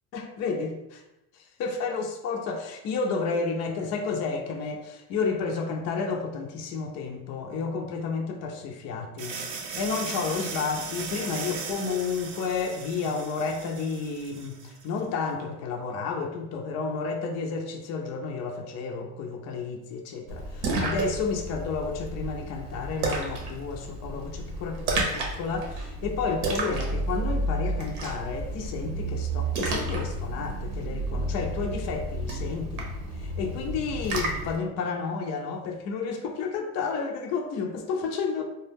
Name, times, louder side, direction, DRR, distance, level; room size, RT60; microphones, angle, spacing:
voice 1, 0.1-0.7 1.6-32.9 33.1-38.4, left 4 dB, 35° left, 2 dB, 0.4 m, -31 dB
sound 1, 9.2-14.9, right 5 dB, 45° right, 0.5 m, -37 dB
Splash splatter, 20.3-34.6, right 2 dB, 70° right, 0.8 m, -31 dB
2.2 x 2.1 x 3.2 m, 0.91 s
supercardioid pair, 95°, 48 cm